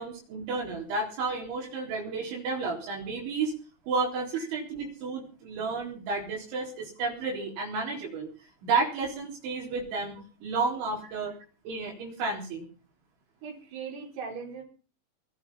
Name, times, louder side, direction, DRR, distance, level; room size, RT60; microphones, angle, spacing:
voice 1, 0.0-3.5 3.9-8.3 8.6-10.2 10.4-11.4 11.7-12.7, right 4 dB, 80° right, -1 dB, 6.4 m, -31 dB
voice 2, 13.4-14.6, right 6 dB, 60° right, 0 dB, 6.3 m, -39 dB
21.0 x 12.0 x 5.7 m, 0.38 s
omnidirectional pair, 5.3 m